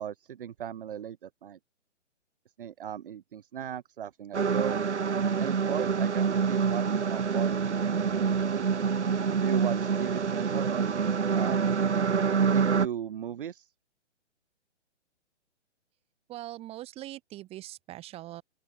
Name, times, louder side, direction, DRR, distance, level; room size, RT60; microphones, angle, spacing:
voice 1, 0.0-1.6 2.6-4.9 5.4-8.7 9.4-11.0 11.3-11.7 12.5-13.7, right 9 dB, 50° right, 0.8 m, -37 dB
sound 1, 4.3-12.9, right 6 dB, 70° right, 1.3 m, -26 dB
voice 2, 16.3-18.4, right 15 dB, 15° right, 1.6 m, -42 dB
open air
figure-of-eight pair, 125°, 36 cm